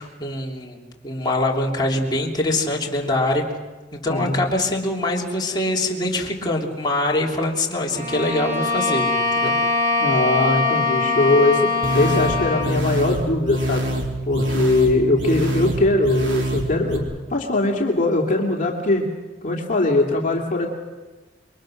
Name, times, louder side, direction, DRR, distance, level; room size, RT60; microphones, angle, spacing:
voice 1, 0.0-3.4 3.9-9.5, left 1 dB, 25° left, -2 dB, 3.2 m, -24 dB
voice 2, 4.1-4.4 10.0-13.9 14.3-19.1 19.4-20.7, left 2 dB, 45° left, 0 dB, 2.7 m, -21 dB
Bowed string instrument, 7.9-12.8, left 3 dB, 40° right, 5.2 m, -22 dB
sound 1, 11.8-17.0, right 1 dB, 80° right, 3.7 m, -25 dB
27.0 x 23.0 x 6.5 m, 1.3 s
head